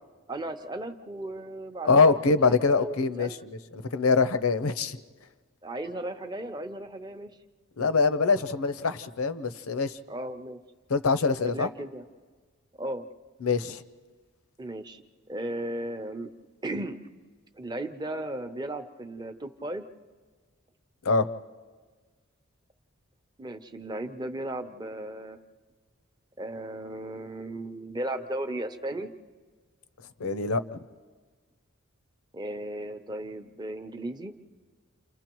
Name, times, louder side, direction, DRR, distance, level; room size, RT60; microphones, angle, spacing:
voice 1, 0.3-3.4 5.6-7.3 10.1-10.6 11.4-12.0 12.8-13.0 14.6-15.0 15.3-16.3 16.6-17.0 17.6-19.8 23.4-25.4 26.4-29.1 32.3-34.3, right 1 dB, 20° right, 7 dB, 0.7 m, -36 dB
voice 2, 1.8-5.0 7.8-10.0 10.9-11.7 13.4-13.8 21.0-21.3 30.2-30.8, left 4 dB, 75° left, 11 dB, 0.7 m, -24 dB
29.0 x 29.0 x 3.1 m, 1.5 s
head